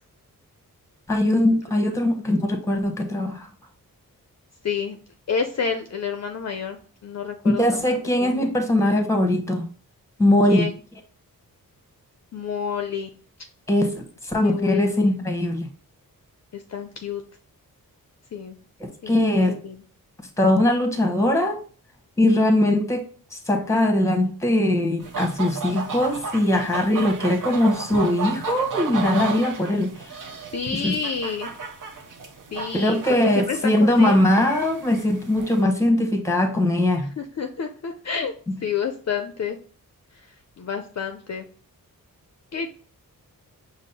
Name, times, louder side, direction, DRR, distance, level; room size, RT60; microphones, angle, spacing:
voice 1, 1.1-3.5 7.4-9.7 10.2-10.7 13.7-15.7 18.8-19.6 20.4-21.6 22.2-23.0 23.3-30.0 30.7-31.0 32.7-37.1 38.5-38.6, left 1 dB, 10° left, 0.9 m, -21 dB
voice 2, 4.6-5.0 5.3-7.8 8.2-8.5 10.5-10.7 12.3-13.1 14.4-15.1 16.5-17.2 18.3-18.6 19.0-19.2 19.5-19.8 30.5-31.5 32.5-34.2 37.2-38.3 38.6-39.6 40.6-41.5 42.5-42.7, left 6 dB, 50° left, 0.5 m, -29 dB
sound 1, 25.0-35.6, right 5 dB, 60° right, 0.8 m, -34 dB
5.2 x 2.0 x 4.0 m
cardioid pair, 75°, 35 cm